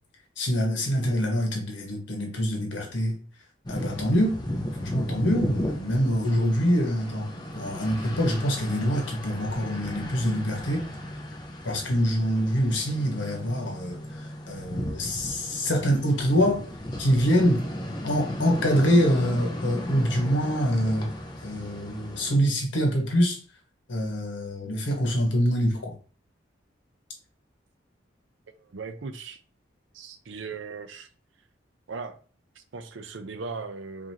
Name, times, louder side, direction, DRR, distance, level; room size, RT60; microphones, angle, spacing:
voice 1, 0.4-3.2 3.7-4.4 4.8-7.3 7.5-10.9 11.6-16.6 17.0-17.7 18.0-21.1 21.4-23.4 23.9-25.9, equal, 75° left, 1.3 m, -25 dB
sound 1, 3.6-22.4, left 1 dB, 20° left, 0.6 m, -35 dB
voice 2, 28.5-29.4 29.9-31.1 31.9-32.2 32.6-34.1, right 4 dB, 85° right, 0.5 m, -38 dB
4.8 x 2.7 x 2.9 m
head